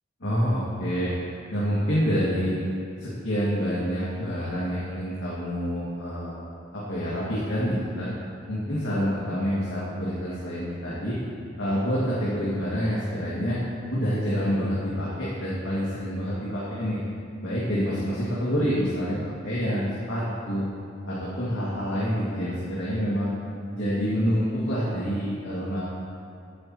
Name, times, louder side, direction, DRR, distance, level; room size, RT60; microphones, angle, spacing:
voice 1, 0.2-1.1 1.5-2.5 3.0-6.3 6.7-8.1 8.5-11.2 11.6-13.6 13.9-17.0 17.4-20.7 21.1-23.3 23.7-25.8, equal, 75° left, -9 dB, 2.2 m, -27 dB
14.0 x 9.7 x 3.1 m, 2.7 s
head